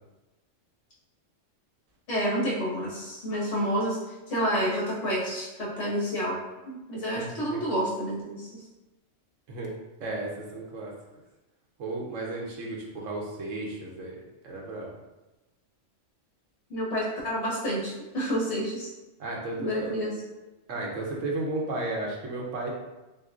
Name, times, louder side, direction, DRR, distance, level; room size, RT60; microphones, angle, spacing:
voice 1, 2.1-4.0 4.3-6.4 6.7-8.6 16.7-18.9 19.6-20.2, equal, 65° left, -6 dB, 1.8 m, -29 dB
voice 2, 7.1-7.6 9.5-9.7 10.0-10.9 11.8-14.9 19.2-19.9 20.7-22.7, right 2 dB, 75° right, -2 dB, 1.2 m, -34 dB
6.5 x 2.2 x 2.5 m, 1.1 s
omnidirectional pair, 1.3 m